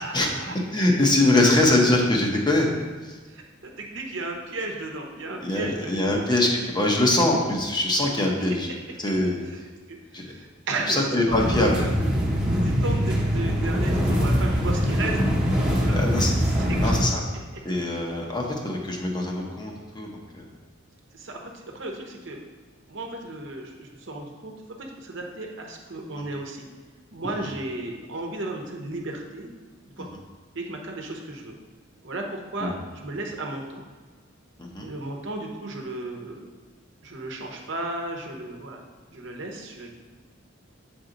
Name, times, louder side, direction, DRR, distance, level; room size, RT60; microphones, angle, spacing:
voice 1, 0.0-0.5 3.3-6.2 8.7-8.8 9.4-11.9 12.5-15.2 15.8-16.9 17.5-17.6 21.1-22.4 22.9-24.5 24.8-26.6 27.1-29.5 30.0-30.1 30.5-31.5 32.0-33.8 34.8-36.4 37.0-38.8 39.1-39.9, right 2 dB, 65° right, 1 dB, 1.0 m, -35 dB
voice 2, 0.7-2.7 5.4-6.5 6.7-8.7 9.0-9.4 10.1-10.3 10.9-11.9 15.9-16.3 16.8-17.2 17.6-20.1 20.3-20.4 26.2-26.3 32.6-32.7 34.7-34.9, left 2 dB, 20° left, -1 dB, 0.9 m, -22 dB
sound 1, 11.3-17.0, equal, 5° right, 1.0 m, -23 dB
7.7 x 4.4 x 3.9 m, 1.4 s
head